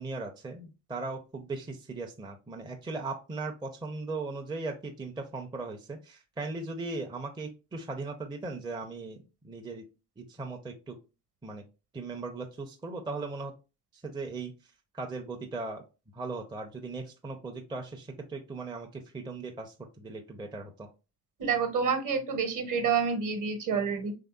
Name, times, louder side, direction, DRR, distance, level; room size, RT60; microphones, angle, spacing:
voice 1, 0.0-9.2 9.4-9.8 10.2-11.0 11.4-11.6 11.9-13.5 14.0-14.5 14.9-15.8 16.1-20.9, right 3 dB, 10° right, 3 dB, 0.5 m, -38 dB
voice 2, 21.4-24.1, right 6 dB, 45° right, 7 dB, 1.0 m, -28 dB
3.1 x 2.7 x 2.3 m, 0.30 s
hypercardioid pair, 60°, 44 cm